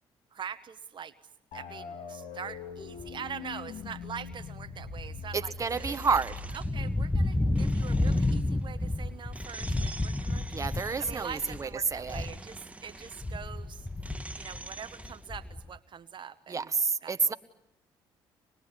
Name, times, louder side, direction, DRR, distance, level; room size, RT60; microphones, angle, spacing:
voice 1, 0.3-1.1 1.5-5.5 5.8-6.2 6.5-10.6 11.0-13.9 14.4-16.7 17.0-17.3, right 7 dB, 50° right, 11 dB, 1.0 m, -43 dB
sound 1, 1.5-8.2, left 5 dB, 75° left, 2.2 m, -43 dB
sound 2, 3.0-3.3 3.8-12.6 12.9-15.8, left 2 dB, 10° left, 1.1 m, -31 dB
voice 2, 5.3-6.3 10.5-12.2 16.5-17.3, right 5 dB, 30° right, 11 dB, 1.2 m, -29 dB
sound 3, 5.7-15.5, right 2 dB, 10° right, 1.4 m, -48 dB
25.0 x 20.5 x 9.9 m, 0.85 s
supercardioid pair, 70°, 10 cm